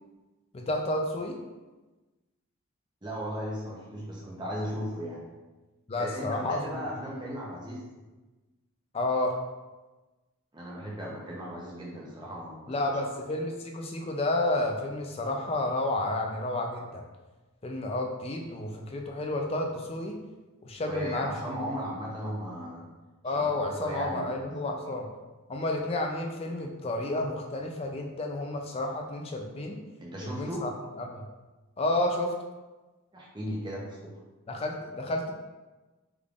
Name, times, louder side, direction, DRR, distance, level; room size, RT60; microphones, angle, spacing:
voice 1, 0.5-1.4 5.9-6.8 8.9-9.4 12.7-17.0 17.6-20.2 20.6-21.3 23.2-25.1 25.5-29.8 30.2-30.7 31.0-31.3 31.8-32.3 34.5-35.3, left 2 dB, 25° left, 2 dB, 0.3 m, -31 dB
voice 2, 3.0-5.2 6.0-7.9 10.5-12.7 20.8-22.9 23.3-24.4 24.6-24.9 30.0-30.7 33.1-34.1, equal, 20° right, -4 dB, 0.7 m, -36 dB
3.5 x 3.4 x 2.4 m, 1.2 s
head